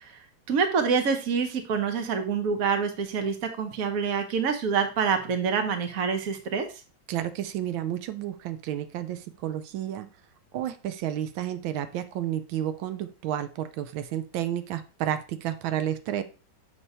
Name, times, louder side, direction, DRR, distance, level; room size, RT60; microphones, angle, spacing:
voice 1, 0.5-6.7, right 6 dB, 50° right, 6 dB, 1.3 m, -26 dB
voice 2, 7.1-10.1 10.5-16.2, right 11 dB, 85° right, 11 dB, 1.4 m, -31 dB
7.2 x 3.3 x 5.5 m, 0.34 s
omnidirectional pair, 2.1 m